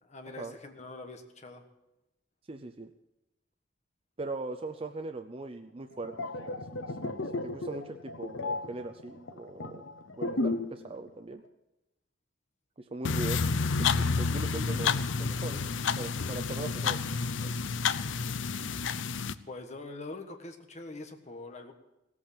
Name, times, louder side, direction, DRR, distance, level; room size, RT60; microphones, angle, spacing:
voice 1, 0.0-1.6 19.5-21.7, left 2 dB, 35° left, 5 dB, 1.4 m, -44 dB
voice 2, 2.5-2.9 4.2-11.4 12.8-13.6 14.0-15.6 16.0-17.5, right 2 dB, 30° right, 6 dB, 0.6 m, -40 dB
sound 1, 5.9-10.8 11.1-11.3, left 2 dB, 90° left, 1.0 m, -35 dB
sound 2, 13.0-19.3, left 5 dB, 70° left, 0.6 m, -30 dB
17.0 x 8.5 x 8.8 m, 0.95 s
head